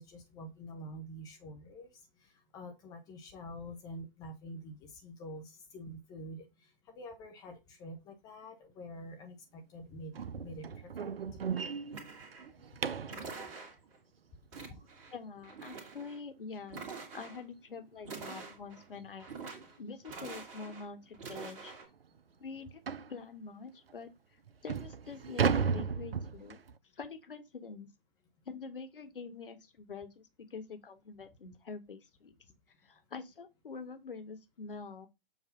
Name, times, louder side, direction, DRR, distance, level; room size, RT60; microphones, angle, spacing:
voice 1, 0.0-1.9 2.5-6.5 7.0-10.1 10.4-10.6 11.0-11.4, equal, 15° left, 0.7 m, -46 dB
sound 1, 10.1-13.2 16.1-16.2 16.6-16.8 17.2-17.3 17.8-17.9 19.0-19.1 19.5-19.6 20.3-20.4 20.7-20.8 21.3-21.4 22.9-23.2 23.9-24.0 24.5-26.8, right 6 dB, 80° right, 0.6 m, -34 dB
sound 2, 11.9-12.6 13.1-14.0 14.5-15.1 15.4-16.2 16.7-17.4 18.0-18.8 19.2-19.8 20.0-20.9 21.1-21.9, right 4 dB, 30° right, 2.1 m, -46 dB
voice 2, 15.1-19.3 19.8-21.7 22.4-22.8 23.1-24.1 24.6-26.6 26.9-27.9 28.4-32.3 32.8-35.1, left 5 dB, 65° left, 1.5 m, -45 dB
7.3 x 2.7 x 5.3 m
figure-of-eight pair, 130°, 29 cm